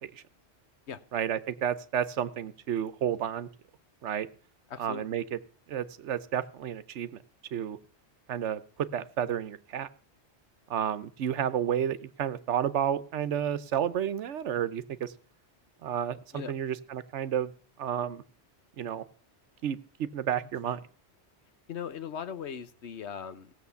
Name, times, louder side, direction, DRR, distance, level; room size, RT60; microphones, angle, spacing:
voice 1, 1.1-3.5 4.0-4.3 4.8-5.4 5.7-7.1 7.5-7.8 8.3-8.6 8.9-9.9 10.7-15.1 15.8-17.5 17.8-18.2 18.8-19.0 19.6-20.8, right 9 dB, 90° right, 15 dB, 1.1 m, -31 dB
voice 2, 4.7-5.1 16.3-16.5 21.7-23.5, left 7 dB, 75° left, 13 dB, 1.2 m, -39 dB
16.5 x 7.2 x 6.9 m, 0.42 s
omnidirectional pair, 1.2 m